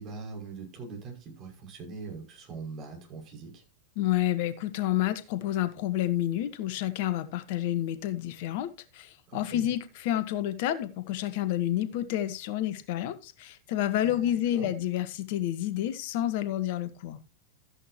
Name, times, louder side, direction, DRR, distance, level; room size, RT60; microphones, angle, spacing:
voice 1, 0.0-3.6 9.3-9.7 14.0-14.7, right 4 dB, 35° right, 6.0 m, -42 dB
voice 2, 4.0-17.2, left 12 dB, 50° left, 1.3 m, -29 dB
13.5 x 10.0 x 3.0 m
figure-of-eight pair, 90°, 0 cm